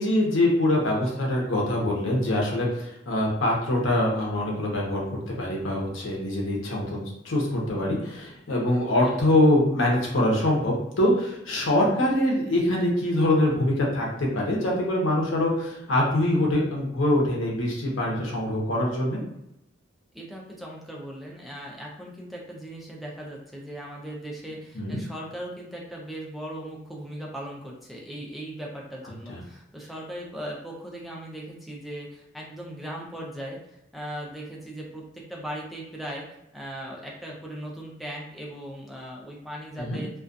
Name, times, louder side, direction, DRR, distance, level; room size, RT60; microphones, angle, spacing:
voice 1, 0.0-19.2 24.7-25.0 29.3-29.4 39.8-40.0, left 1 dB, 85° left, -2 dB, 0.8 m, -24 dB
voice 2, 20.1-33.6 33.9-36.2 36.5-40.1, right 1 dB, ahead, -3 dB, 0.4 m, -38 dB
2.3 x 2.2 x 2.5 m, 0.82 s
head